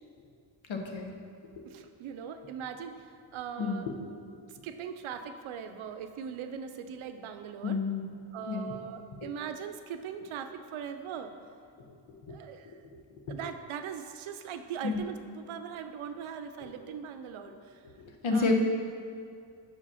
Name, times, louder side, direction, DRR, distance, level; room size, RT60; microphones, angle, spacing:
voice 1, 0.7-1.1 3.6-3.8 7.6-8.0 8.5-8.7 14.8-15.0 18.2-18.5, left 4 dB, 80° left, 2 dB, 0.9 m, -29 dB
voice 2, 1.7-3.0 3.3-3.9 4.6-7.8 8.3-11.3 12.3-12.8 13.3-17.5 18.3-18.5, right 7 dB, 90° right, 8 dB, 0.6 m, -40 dB
5.2 x 4.9 x 5.6 m, 2.3 s
cardioid pair, 70°, 47 cm